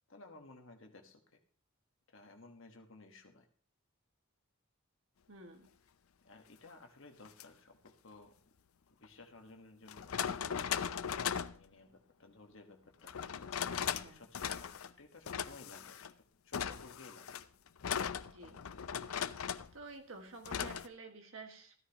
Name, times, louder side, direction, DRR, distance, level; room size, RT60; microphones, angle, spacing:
voice 1, 0.1-1.2 2.1-3.5 6.2-8.3 9.0-13.2 13.8-16.1 16.4-17.3, left 2 dB, 65° left, 4 dB, 1.4 m, -56 dB
voice 2, 5.3-5.7 13.7-14.2 18.3-18.6 19.7-21.7, right 3 dB, 70° right, 4 dB, 1.7 m, -51 dB
sound 1, 7.3-7.4 9.0-9.1 9.9-11.6 13.1-14.1 14.3-14.9 15.3-16.1 16.5-19.7 20.5-20.9, left 8 dB, 90° left, 0.6 m, -38 dB
14.0 x 13.0 x 2.9 m, 0.44 s
head